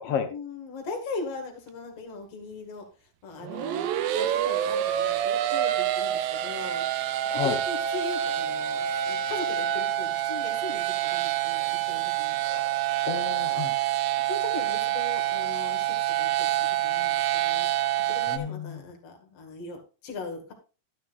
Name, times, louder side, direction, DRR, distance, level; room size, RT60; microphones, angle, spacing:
voice 1, 0.3-3.9 4.1-6.9 7.3-12.4 14.2-17.7 18.0-20.5, left 3 dB, 50° left, 3 dB, 2.8 m, -39 dB
sound 1, 3.4-18.4, right 12 dB, 85° right, 2.4 m, -27 dB
voice 2, 7.3-7.6 12.4-13.7 18.3-18.8, left 7 dB, 65° left, 8 dB, 1.5 m, -32 dB
12.0 x 10.0 x 2.5 m, 0.32 s
omnidirectional pair, 3.8 m